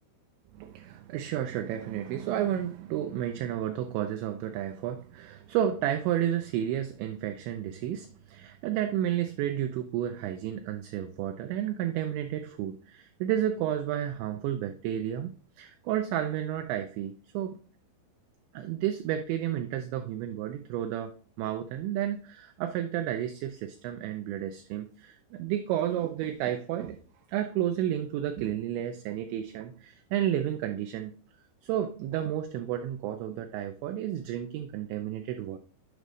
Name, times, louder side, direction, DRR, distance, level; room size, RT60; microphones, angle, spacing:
voice 1, 0.5-17.5 18.5-27.0 27.3-31.1 31.6-35.6, right 11 dB, 90° right, 7 dB, 2.6 m, -31 dB
8.2 x 5.1 x 3.1 m, 0.40 s
omnidirectional pair, 5.9 m